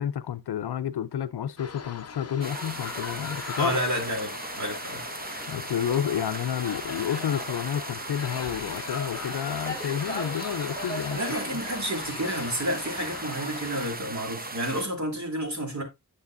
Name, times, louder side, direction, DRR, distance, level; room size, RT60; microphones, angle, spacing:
voice 1, 0.0-3.8 5.5-11.2 11.5-11.6, left 9 dB, 80° left, 0.5 m, -30 dB
sound 1, 1.6-13.9, left 6 dB, 40° left, 0.6 m, -40 dB
sound 2, 2.4-14.8, right 2 dB, 25° right, 0.7 m, -38 dB
voice 2, 3.6-5.0 11.2-15.8, right 1 dB, 45° right, 3.0 m, -30 dB
sound 3, 9.6-11.6, equal, 10° left, 2.1 m, -38 dB
9.7 x 6.9 x 2.5 m
wide cardioid pair, 95°, 39 cm